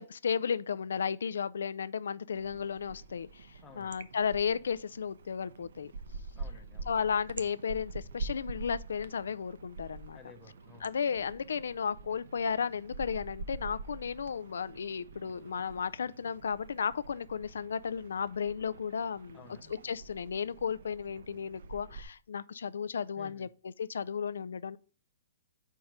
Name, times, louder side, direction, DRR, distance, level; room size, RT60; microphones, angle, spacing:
voice 1, 0.0-3.5 3.8-5.9 6.9-10.2 10.8-19.4 19.7-24.8, left 6 dB, 85° left, 0.3 m, -34 dB
sound 1, 2.3-22.0, right 4 dB, 65° right, 0.6 m, -46 dB
voice 2, 3.6-4.0 6.4-6.9 10.1-10.9 19.3-19.7 23.2-23.5, left 5 dB, 10° left, 0.6 m, -54 dB
5.4 x 4.6 x 4.9 m
hypercardioid pair, 175°, 0 cm